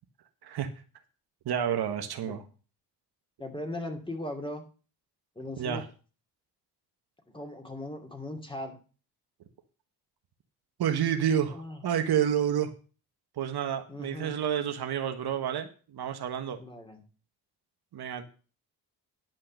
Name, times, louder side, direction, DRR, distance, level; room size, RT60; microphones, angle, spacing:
voice 1, 1.4-2.4 5.6-5.8 10.8-12.7 13.4-16.6 17.9-18.2, right 9 dB, 65° right, 7 dB, 1.3 m, -29 dB
voice 2, 3.4-4.6 5.4-5.8 7.3-8.8 11.5-11.8 13.9-14.4 16.6-17.0, left 1 dB, 10° left, 4 dB, 2.7 m, -38 dB
10.5 x 5.6 x 6.6 m, 0.37 s
cardioid pair, 75°, 41 cm